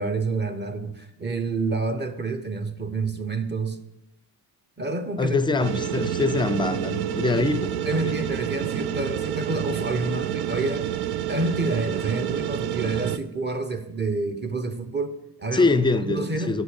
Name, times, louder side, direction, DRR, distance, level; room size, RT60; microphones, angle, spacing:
voice 1, 0.0-3.8 4.8-5.5 7.3-7.5 7.8-16.6, right 3 dB, 25° right, 0.9 m, -29 dB
voice 2, 5.2-8.2 15.5-16.6, left 3 dB, 10° left, 0.5 m, -24 dB
sound 1, 5.6-13.2, right 10 dB, 75° right, 0.6 m, -28 dB
8.0 x 6.6 x 7.1 m
cardioid pair, 120°, 39 cm